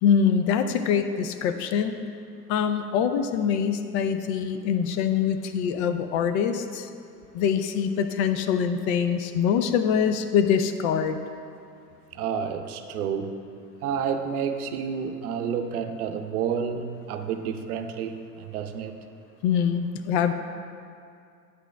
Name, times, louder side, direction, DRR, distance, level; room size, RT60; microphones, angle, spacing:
voice 1, 0.0-1.9 2.5-6.9 7.3-11.2 19.4-20.3, left 7 dB, 45° left, 9 dB, 0.5 m, -24 dB
voice 2, 12.1-13.4 13.8-18.9, right 7 dB, 65° right, 7 dB, 0.7 m, -30 dB
9.8 x 8.0 x 2.2 m, 2.4 s
hypercardioid pair, 90°, 49 cm